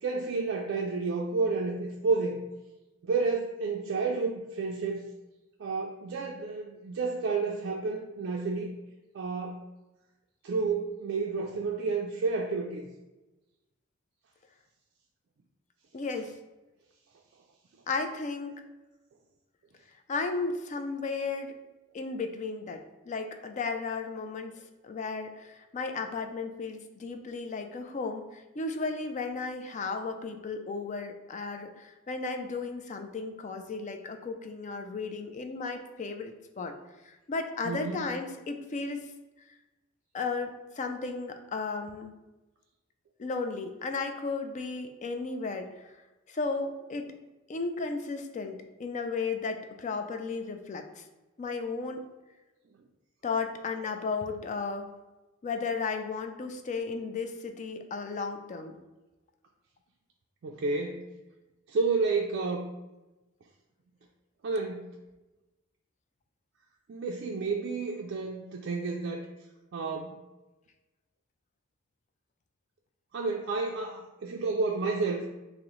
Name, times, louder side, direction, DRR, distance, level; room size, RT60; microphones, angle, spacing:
voice 1, 0.0-2.4 3.0-5.0 5.6-8.7 9.1-9.7 10.4-12.9 37.6-38.0 60.4-61.1 61.7-62.7 64.4-64.9 66.9-69.3 69.7-70.2 73.1-75.3, right 4 dB, 55° right, -1 dB, 0.3 m, -30 dB
voice 2, 15.9-16.3 17.9-18.6 20.1-21.6 21.9-36.8 37.0-39.1 40.1-42.1 43.2-46.0 46.3-47.1 47.5-51.0 51.4-52.0 53.2-54.9 55.4-58.8, left 4 dB, 35° left, 6 dB, 0.3 m, -34 dB
6.1 x 2.0 x 3.0 m, 1.1 s
head